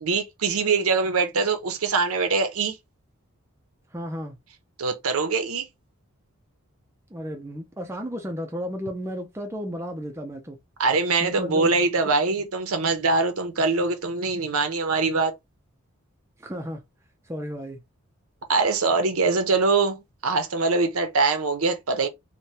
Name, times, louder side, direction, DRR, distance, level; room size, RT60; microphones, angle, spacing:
voice 1, 0.0-2.8 4.8-5.7 10.8-15.3 18.5-22.1, right 4 dB, 75° right, 0.7 m, -23 dB
voice 2, 3.9-4.4 7.1-10.6 11.2-11.7 12.0-12.1 16.4-16.8 17.3-17.8, equal, 10° right, 0.4 m, -33 dB
3.2 x 2.2 x 2.8 m
head